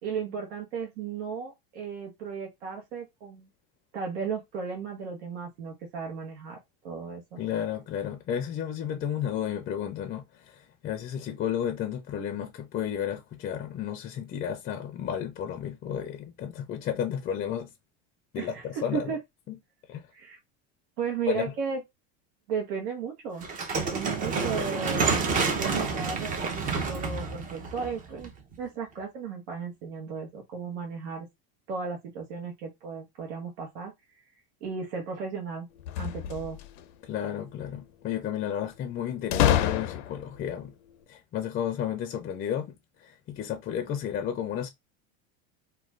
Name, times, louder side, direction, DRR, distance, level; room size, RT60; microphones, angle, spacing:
voice 1, 0.0-3.5 3.9-6.6 6.8-7.4 18.4-19.2 20.1-20.4 21.0-21.8 22.5-28.3 28.6-31.3 31.7-33.9 34.6-35.7 36.0-36.6, right 6 dB, 85° right, 1.0 m, -35 dB
voice 2, 7.4-10.2 10.5-17.7 18.3-19.1 19.9-20.0 21.3-21.5 37.0-40.7 41.1-42.7 43.0-44.7, left 9 dB, 30° left, 0.4 m, -32 dB
sound 1, 23.4-28.5, right 4 dB, 25° right, 0.6 m, -29 dB
sound 2, 35.8-36.8 39.3-40.4, left 11 dB, 85° left, 0.5 m, -26 dB
2.4 x 2.3 x 3.1 m
supercardioid pair, 145°, 31 cm